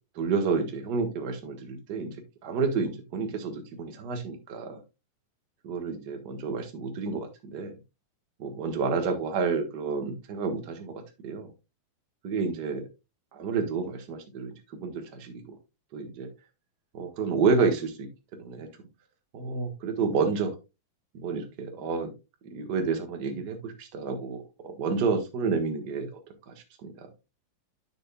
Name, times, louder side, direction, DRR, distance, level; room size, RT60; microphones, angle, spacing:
voice 1, 0.1-2.2 2.4-4.8 5.6-7.8 8.4-11.5 12.2-12.8 13.3-15.6 15.9-16.3 16.9-18.7 19.3-20.5 21.1-22.1 22.4-26.2 26.5-26.6 26.8-27.1, right 5 dB, 50° right, 6 dB, 1.2 m, -30 dB
9.8 x 7.0 x 2.3 m, 0.25 s
omnidirectional pair, 4.0 m